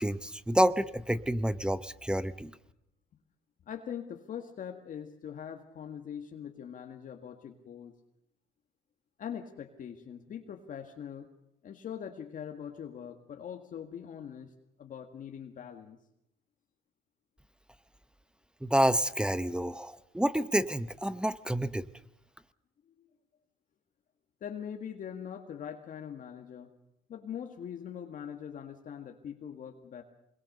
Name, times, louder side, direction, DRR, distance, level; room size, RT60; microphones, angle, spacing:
voice 1, 0.0-2.5 18.6-21.9, equal, 5° right, 14 dB, 0.8 m, -28 dB
voice 2, 3.7-7.9 9.2-11.3 11.6-14.5 14.8-16.0 22.9-23.0 24.4-26.7 27.1-30.0, left 8 dB, 50° left, 4 dB, 1.9 m, -42 dB
24.5 x 22.0 x 6.7 m, 0.81 s
cardioid pair, 110°, 17 cm